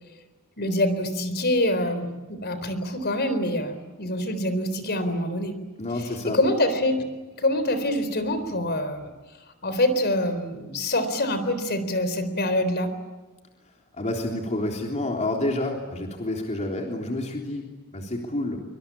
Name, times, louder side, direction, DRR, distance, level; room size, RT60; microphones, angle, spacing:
voice 1, 0.6-5.6 6.2-7.0 7.4-9.1 9.6-12.9, left 1 dB, 50° left, 11 dB, 4.1 m, -25 dB
voice 2, 5.8-6.4 13.9-18.6, left 1 dB, 30° left, 1 dB, 3.5 m, -29 dB
26.5 x 25.5 x 8.8 m, 1.2 s
head